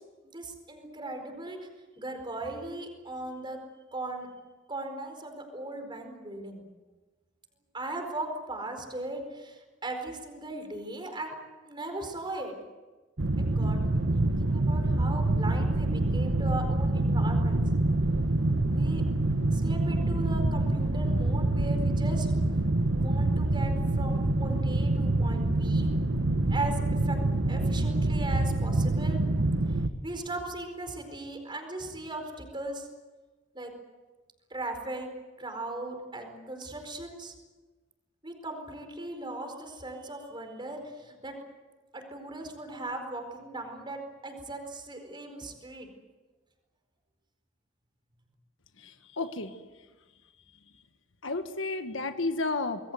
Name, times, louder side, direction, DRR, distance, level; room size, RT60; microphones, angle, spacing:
voice 1, 0.2-1.7 2.0-3.6 3.9-4.3 4.7-6.6 7.7-11.3 11.6-12.5 13.4-17.6 18.7-19.0 19.5-22.3 22.9-25.9 26.5-27.2 27.5-29.2 30.0-32.9 33.5-33.7 34.5-35.1 35.4-37.3 38.2-41.3 41.9-45.9, right 2 dB, 25° right, 5 dB, 4.6 m, -38 dB
sound 1, 13.2-29.9, right 2 dB, 85° right, 1.3 m, -26 dB
voice 2, 48.8-49.5 51.2-52.9, left 3 dB, 90° left, 8 dB, 1.5 m, -32 dB
26.5 x 21.0 x 7.9 m, 1.3 s
head